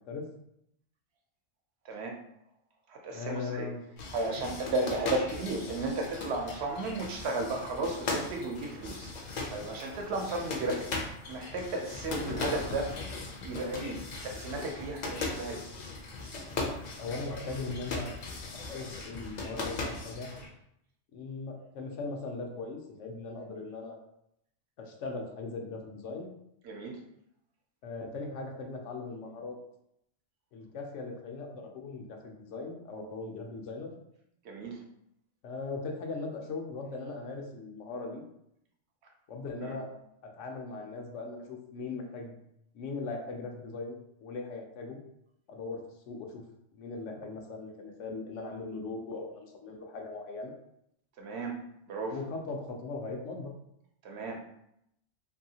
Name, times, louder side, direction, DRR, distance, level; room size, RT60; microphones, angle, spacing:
voice 1, 1.8-2.2 2.9-3.7 4.1-10.9 11.3-13.1 13.4-15.7 26.6-27.0 34.4-34.8 39.6-39.8 51.2-51.6 51.9-52.2 54.0-54.4, right 2 dB, 70° right, 2 dB, 0.8 m, -34 dB
voice 2, 3.1-3.8 17.0-18.1 18.7-20.3 21.1-24.0 24.8-26.3 27.8-29.6 30.5-33.9 35.4-38.2 39.3-39.9 40.3-42.4 42.7-45.0 45.5-45.8 46.1-46.4 46.7-50.5 52.1-53.5, left 3 dB, 90° left, 1 dB, 1.0 m, -39 dB
sound 1, 4.0-20.5, left 3 dB, 60° left, 0.4 m, -38 dB
2.7 x 2.7 x 2.7 m, 0.77 s
omnidirectional pair, 1.2 m